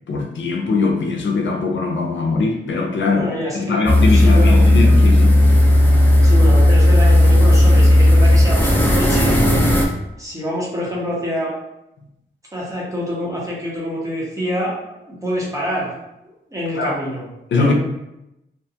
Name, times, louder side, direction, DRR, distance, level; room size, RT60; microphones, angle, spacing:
voice 1, 0.1-3.3 3.5-5.4 16.8-17.0 17.5-17.7, left 4 dB, 75° left, 2 dB, 0.5 m, -21 dB
voice 2, 3.1-3.8 4.1-4.7 6.2-9.4 10.2-11.5 12.5-15.9 16.5-17.3 17.6-17.7, equal, 15° right, -5 dB, 0.8 m, -26 dB
sound 1, 3.9-9.9, left 1 dB, 10° left, 0.4 m, -12 dB
2.5 x 2.2 x 2.7 m, 0.88 s
wide cardioid pair, 130°, 20 cm